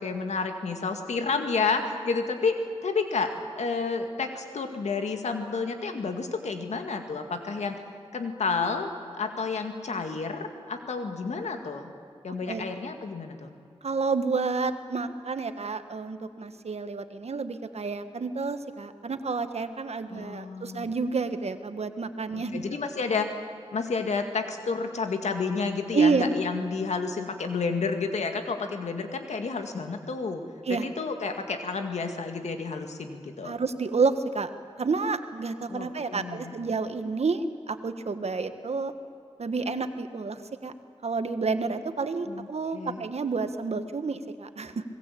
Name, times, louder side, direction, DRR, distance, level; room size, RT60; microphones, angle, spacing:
voice 1, 0.0-2.5 2.8-7.8 8.1-8.9 9.2-11.9 12.2-13.5 20.1-20.9 22.3-23.3 23.7-30.4 30.7-33.5 35.7-36.6 42.3-42.5 42.7-43.0, left 4 dB, 90° left, 5 dB, 2.1 m, -30 dB
voice 2, 13.8-22.6 25.9-26.2 30.6-30.9 33.4-34.5 34.8-38.9 39.4-40.7 41.0-44.8, right 4 dB, 70° right, 9 dB, 1.5 m, -29 dB
26.0 x 20.0 x 8.6 m, 2.2 s
cardioid pair, 40°, 11 cm